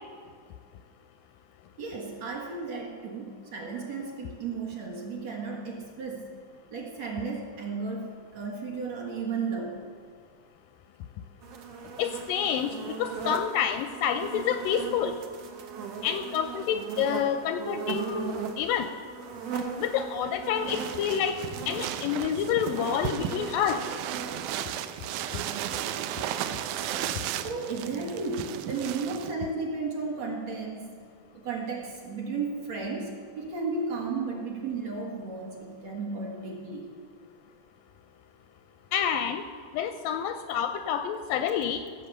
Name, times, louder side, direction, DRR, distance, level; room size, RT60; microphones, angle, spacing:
voice 1, 1.8-6.3 6.7-9.8 27.4-30.9 31.4-36.9, right 4 dB, 55° right, -1 dB, 2.2 m, -34 dB
sound 1, 11.4-27.0, right 6 dB, 75° right, 1.4 m, -39 dB
voice 2, 12.0-15.1 16.0-18.9 19.8-21.4 21.7-23.8 38.9-39.4 39.7-41.8, left 8 dB, 80° left, 9 dB, 2.0 m, -28 dB
sound 2, 20.7-29.3, right 10 dB, 90° right, 1.8 m, -35 dB
16.0 x 7.6 x 6.7 m, 2.1 s
omnidirectional pair, 4.3 m